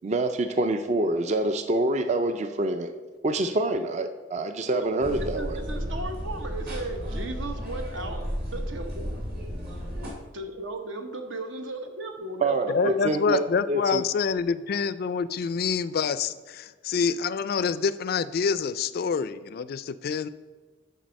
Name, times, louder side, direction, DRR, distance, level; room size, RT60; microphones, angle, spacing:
voice 1, 0.0-2.9 3.2-5.6 12.4-14.0, right 2 dB, 35° right, 8 dB, 0.4 m, -26 dB
voice 2, 4.7-9.1 10.1-13.5, right 2 dB, 75° right, 5 dB, 1.0 m, -36 dB
sound 1, 5.0-10.1, equal, 50° right, 2.3 m, -33 dB
voice 3, 12.7-20.3, left 6 dB, 50° left, 15 dB, 0.3 m, -27 dB
10.5 x 4.1 x 5.2 m, 1.3 s
head